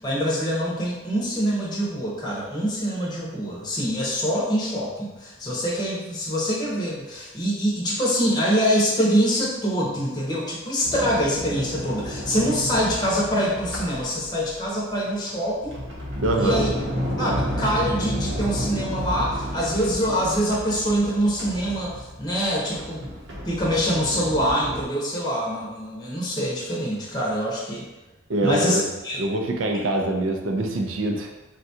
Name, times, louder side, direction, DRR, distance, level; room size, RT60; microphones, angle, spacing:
voice 1, 0.0-15.8 16.4-16.7 17.2-23.1 23.5-27.8 28.4-29.2, equal, 20° left, -5 dB, 0.6 m, -24 dB
Sliding door, 10.8-14.6 15.3-24.8, equal, 65° right, 0.8 m, -31 dB
voice 2, 16.2-16.6 28.3-28.9 29.2-31.3, right 1 dB, 85° right, 3 dB, 0.4 m, -24 dB
3.6 x 2.2 x 2.7 m, 1.1 s
head